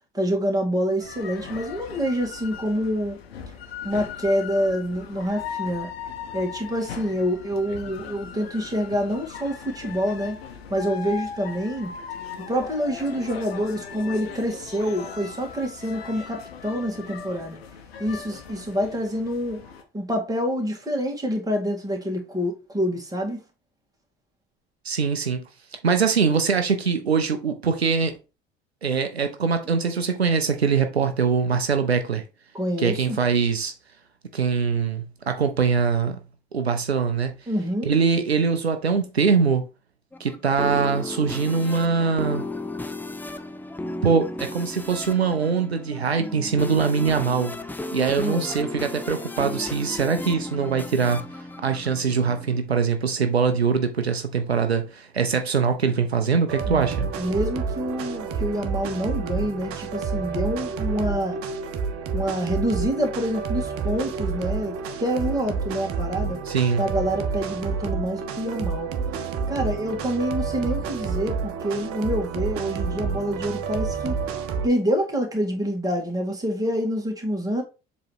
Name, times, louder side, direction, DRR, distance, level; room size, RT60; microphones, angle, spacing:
voice 1, 0.1-3.2 3.8-5.9 6.3-10.4 10.7-11.9 12.5-17.6 18.0-19.6 19.9-23.4 32.5-33.2 37.5-37.9 48.2-48.5 56.7-61.4 62.1-66.4 66.8-68.9 69.5-74.2 74.6-77.6, equal, 10° right, 2.2 m, -27 dB
sound 1, 1.0-19.8, left 7 dB, 70° left, 1.1 m, -38 dB
voice 2, 24.8-25.4 25.7-28.1 28.8-32.2 32.8-33.7 34.3-36.2 36.5-37.3 37.8-39.6 40.2-42.4 44.0-47.6 47.9-57.1 66.5-66.9, right 5 dB, 85° right, 0.6 m, -23 dB
sound 2, 40.1-52.6, left 2 dB, 5° left, 0.6 m, -34 dB
sound 3, 56.5-74.7, right 5 dB, 45° right, 1.1 m, -29 dB
7.4 x 3.2 x 4.5 m
figure-of-eight pair, 60°, 31 cm